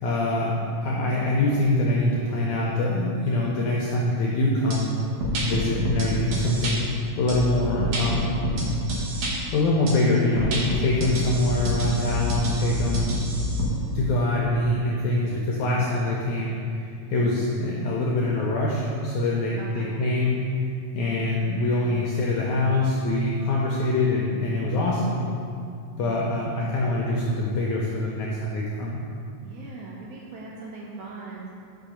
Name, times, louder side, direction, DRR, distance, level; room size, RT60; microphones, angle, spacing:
voice 1, 0.0-4.9 5.4-6.8 7.2-8.4 9.5-13.1 14.0-20.4 20.9-25.3 26.0-29.0, left 2 dB, 85° left, -3 dB, 1.7 m, -24 dB
sound 1, 4.7-4.8 5.2-6.7 7.3-9.3 9.9-10.0 10.4-13.7, equal, 60° right, 2.2 m, -27 dB
voice 2, 15.3-16.1 19.6-20.0 26.0-26.2 29.4-31.5, right 3 dB, 80° right, -3 dB, 1.8 m, -41 dB
6.1 x 5.8 x 5.1 m, 2.4 s
omnidirectional pair, 4.2 m